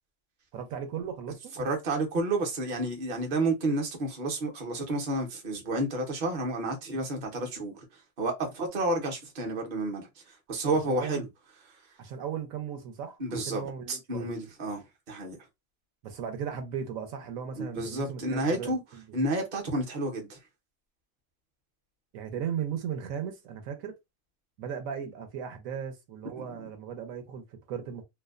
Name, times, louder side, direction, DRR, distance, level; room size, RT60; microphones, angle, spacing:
voice 1, 0.5-1.5 10.7-11.3 12.0-13.2 13.5-14.3 16.0-19.0 22.1-24.0 24.6-28.0, right 8 dB, 75° right, 1.0 m, -36 dB
voice 2, 1.5-7.8 8.2-11.3 13.2-13.6 13.9-15.4 17.6-18.8 19.1-20.4 26.4-26.5, right 2 dB, 45° right, 0.7 m, -30 dB
2.6 x 2.1 x 2.3 m
omnidirectional pair, 1.5 m